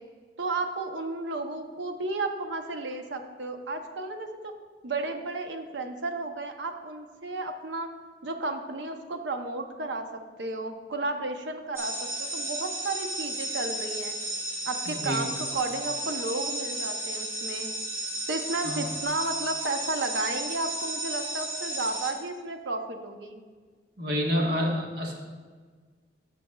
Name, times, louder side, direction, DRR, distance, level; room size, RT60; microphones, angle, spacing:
voice 1, 0.4-4.5 4.8-7.9 8.2-10.1 10.4-11.9 12.2-14.2 14.7-17.7 18.3-23.4, right 2 dB, 85° right, 6 dB, 0.7 m, -33 dB
sound 1, 11.8-22.1, right 1 dB, 15° right, 1.0 m, -33 dB
voice 2, 14.9-15.3 18.6-18.8 24.0-25.1, equal, 60° right, -1 dB, 1.4 m, -28 dB
13.0 x 6.8 x 2.3 m, 1.5 s
head